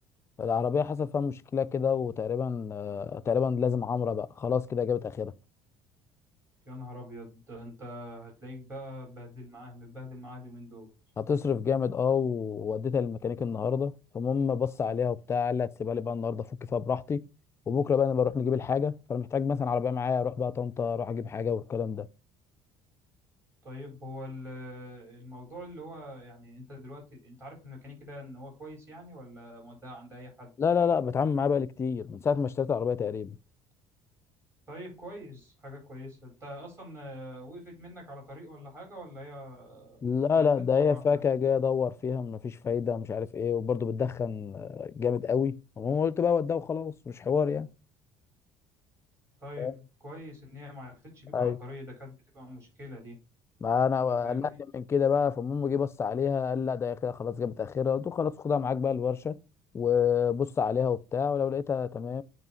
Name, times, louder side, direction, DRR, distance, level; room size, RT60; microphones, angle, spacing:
voice 1, 0.4-5.3 11.2-17.3 17.7-22.1 30.6-33.4 40.0-47.7 49.6-49.7 51.3-51.6 53.6-59.4 59.7-62.2, left 6 dB, 25° left, 0.4 m, -28 dB
voice 2, 6.6-10.9 23.6-30.5 34.7-40.0 40.3-41.2 49.4-53.2 54.2-54.6, left 1 dB, 25° right, 4.5 m, -44 dB
9.2 x 3.1 x 4.4 m
cardioid pair, 125°, 10 cm